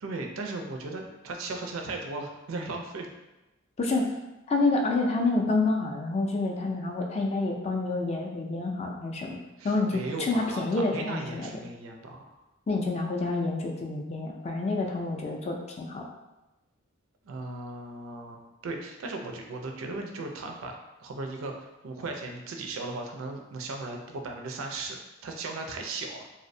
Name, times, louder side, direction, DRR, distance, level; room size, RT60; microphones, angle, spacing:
voice 1, 0.0-3.1 9.6-12.3 17.2-20.8 21.0-21.5 21.8-26.2, right 3 dB, 75° right, 3 dB, 0.4 m, -37 dB
voice 2, 3.8-4.1 4.5-9.4 9.6-11.5 12.7-16.0, left 3 dB, 30° left, 1 dB, 0.3 m, -28 dB
2.6 x 2.1 x 2.6 m, 1.0 s
head